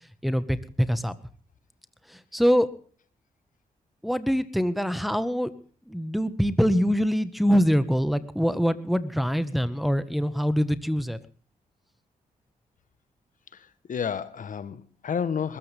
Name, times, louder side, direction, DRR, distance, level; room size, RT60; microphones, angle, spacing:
voice 1, 0.2-1.1 2.1-2.7 4.0-5.5 5.9-11.2, equal, ahead, 12 dB, 1.6 m, -24 dB
voice 2, 13.5-15.6, left 7 dB, 60° left, 15 dB, 1.2 m, -31 dB
22.0 x 14.0 x 3.5 m, 0.40 s
cardioid pair, 70°, 15 cm